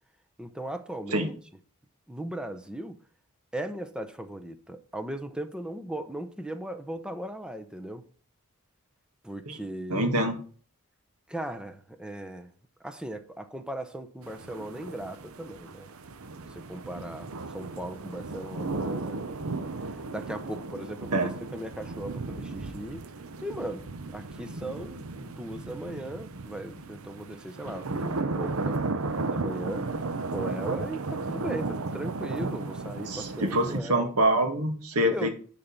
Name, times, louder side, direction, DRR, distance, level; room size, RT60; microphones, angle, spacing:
voice 1, 0.4-1.4 2.1-3.0 3.5-8.1 9.2-10.2 11.3-12.5 12.8-15.9 16.5-19.3 19.8-23.0 23.4-28.8 29.3-30.0 30.3-34.1 35.1-35.3, right 1 dB, 5° right, 0.8 m, -38 dB
voice 2, 9.9-10.4 21.1-21.3 33.1-35.3, right 1 dB, 90° right, 1.9 m, -25 dB
sound 1, 14.2-33.8, right 3 dB, 70° right, 0.8 m, -35 dB
10.0 x 4.1 x 7.3 m
head